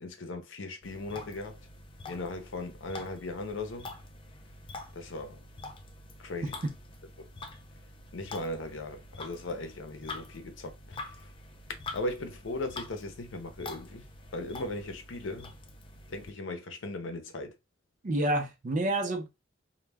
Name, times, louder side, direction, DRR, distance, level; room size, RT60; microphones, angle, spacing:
voice 1, 0.0-1.6 2.1-3.9 5.0-5.4 6.2-6.6 7.2-7.3 8.1-11.3 11.9-14.1 14.3-15.5 16.1-17.5, left 2 dB, 75° left, 0.6 m, -38 dB
sound 1, 0.8-16.3, left 2 dB, 25° left, 0.4 m, -46 dB
voice 2, 6.4-6.7 18.0-19.3, right 1 dB, 40° right, 0.5 m, -29 dB
2.2 x 2.1 x 3.3 m
head